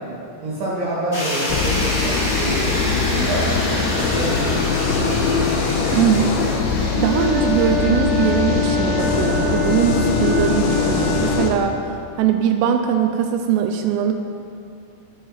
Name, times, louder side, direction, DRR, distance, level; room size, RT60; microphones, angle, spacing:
voice 1, 0.4-3.5 4.1-5.4, right 1 dB, 60° right, -9 dB, 4.5 m, -28 dB
sound 1, 1.1-9.1, equal, 25° left, 1.8 m, -27 dB
sound 2, 1.5-11.5, left 5 dB, 75° left, 2.8 m, -22 dB
voice 2, 5.9-6.3 6.9-11.8 12.2-14.3, right 8 dB, 80° right, 5 dB, 3.1 m, -21 dB
Wind instrument woodwind instrument, 6.9-11.5, left 3 dB, 40° right, 1.5 m, -25 dB
13.0 x 11.0 x 4.3 m, 2.5 s
omnidirectional pair, 6.0 m